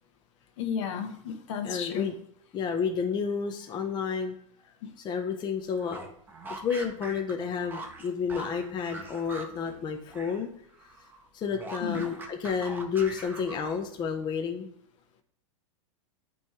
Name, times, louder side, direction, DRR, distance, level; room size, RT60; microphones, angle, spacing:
voice 1, 0.6-2.1 4.8-4.9 11.8-12.1, left 7 dB, 60° left, 7 dB, 1.0 m, -33 dB
voice 2, 1.6-2.1 2.5-4.4 5.0-6.0 6.6-10.5 11.3-14.7, left 6 dB, 25° left, 4 dB, 0.6 m, -30 dB
sound 1, 5.7-10.4 10.7-14.0, right 2 dB, 10° right, 0.9 m, -43 dB
9.2 x 3.1 x 3.5 m, 0.69 s
hypercardioid pair, 120°, 17 cm